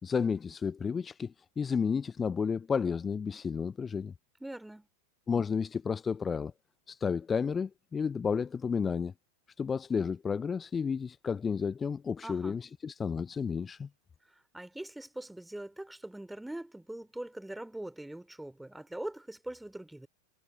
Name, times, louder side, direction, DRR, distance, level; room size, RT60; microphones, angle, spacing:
voice 1, 0.0-4.1 5.3-6.5 6.9-9.1 9.6-13.9, left 6 dB, 20° left, 0.7 m, -32 dB
voice 2, 4.4-4.9 12.2-12.6 14.3-20.1, right 1 dB, 5° right, 3.7 m, -42 dB
figure-of-eight pair, 90°, 0 cm